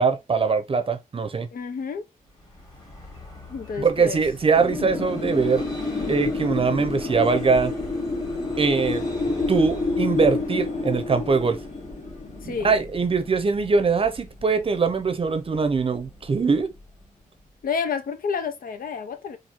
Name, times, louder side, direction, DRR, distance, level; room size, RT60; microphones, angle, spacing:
voice 1, 0.0-1.5 3.8-5.6 6.1-7.7 8.6-9.1 9.5-11.6 12.4-16.7, right 5 dB, 40° right, 0.6 m, -22 dB
voice 2, 1.5-2.1 3.5-4.2 12.4-12.8 17.6-19.4, left 6 dB, 85° left, 0.7 m, -30 dB
Vehicle, 2.2-17.7, left 1 dB, 25° left, 1.8 m, -42 dB
Wind, 4.6-13.3, left 3 dB, 55° left, 1.3 m, -28 dB
4.3 x 2.6 x 2.9 m
wide cardioid pair, 150°, 14 cm